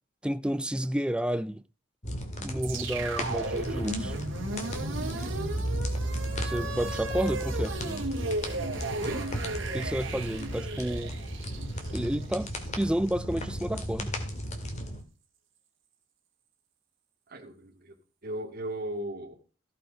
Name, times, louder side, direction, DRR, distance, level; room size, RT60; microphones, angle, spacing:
voice 1, 0.2-1.6 2.4-4.2 6.4-7.8 9.7-11.2 11.9-14.2, right 1 dB, 5° right, 0.4 m, -31 dB
sound 1, 2.0-15.0, equal, 35° left, 2.1 m, -36 dB
sound 2, 2.6-12.8, right 2 dB, 75° right, 2.4 m, -34 dB
voice 2, 5.0-5.4 9.0-9.2 17.3-17.9 18.2-19.3, right 1 dB, 50° right, 2.3 m, -37 dB
15.0 x 5.6 x 5.1 m
head